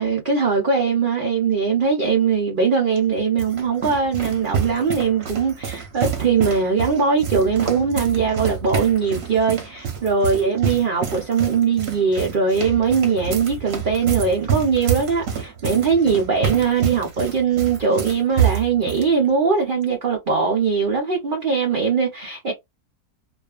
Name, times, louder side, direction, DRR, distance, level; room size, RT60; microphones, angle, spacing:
voice 1, 0.0-22.5, right 5 dB, 70° right, 0.4 m, -20 dB
sound 1, 3.0-19.1, right 7 dB, 50° right, 0.8 m, -27 dB
2.5 x 2.3 x 2.3 m
omnidirectional pair, 1.7 m